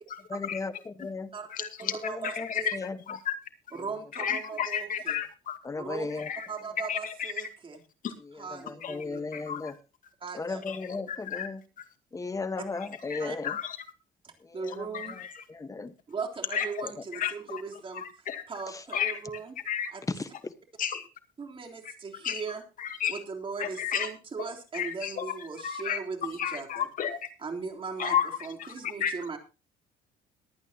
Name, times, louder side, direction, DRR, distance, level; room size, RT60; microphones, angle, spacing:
voice 1, 0.3-1.3 1.8-3.2 5.6-6.3 8.2-9.8 10.3-11.6 12.1-13.6 14.4-15.9 16.8-16.9 18.7-18.8 20.1-20.3, left 4 dB, 20° left, 12 dB, 1.3 m, -36 dB
voice 2, 1.3-2.7 3.7-5.2 5.8-6.1 6.5-7.8 8.3-9.2 10.2-10.6 13.2-13.4 14.2-15.2 16.1-18.0 18.5-19.6 19.9-20.0 21.4-22.6 23.1-26.9 27.4-29.4, right 5 dB, 30° right, 2 dB, 3.5 m, -38 dB
voice 3, 2.2-2.8 3.1-3.3 4.2-5.6 6.3-6.5 6.9-7.3 8.0-8.1 8.8-8.9 9.3-9.7 10.7-10.8 11.3-11.5 13.1-13.7 14.9-15.1 16.5-16.7 17.2-17.6 18.0-18.4 18.9-19.1 19.7-19.9 20.8-21.0 22.2-22.4 23.0-23.2 23.6-24.1 24.7-25.2 25.6-26.0 26.4-27.2 28.0-28.3 29.0-29.1, left 8 dB, 50° left, 8 dB, 2.2 m, -31 dB
22.5 x 9.1 x 2.9 m, 0.31 s
cardioid pair, 110°, 17 cm